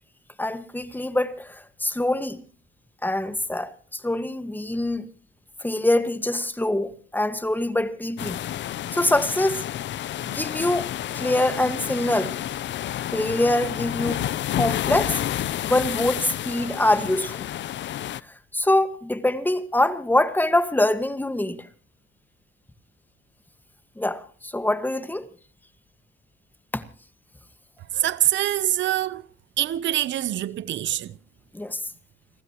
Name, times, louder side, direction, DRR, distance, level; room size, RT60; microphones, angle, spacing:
voice 1, 0.4-2.4 3.0-5.1 5.6-8.4 8.9-9.6 10.2-12.3 13.1-14.2 14.5-15.2 15.6-17.5 18.5-21.7 24.0-25.3 26.7-26.8 31.5-31.8, left 1 dB, 10° left, 1.7 m, -24 dB
sound 1, 8.2-18.2, left 12 dB, 65° left, 0.7 m, -30 dB
voice 2, 27.9-29.3 29.6-31.2, right 13 dB, 70° right, 0.8 m, -24 dB
30.0 x 14.5 x 3.0 m
cardioid pair, 90°, 20 cm